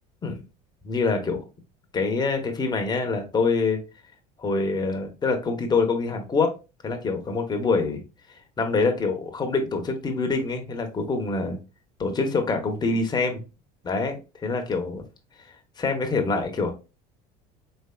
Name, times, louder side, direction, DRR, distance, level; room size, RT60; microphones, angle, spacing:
voice 1, 0.8-1.4 1.9-3.8 4.4-6.5 6.8-8.0 8.6-11.6 12.0-13.4 13.8-15.0 15.8-16.7, left 4 dB, 25° left, 4 dB, 0.9 m, -25 dB
4.3 x 3.1 x 2.3 m, 0.29 s
supercardioid pair, 115°, 18 cm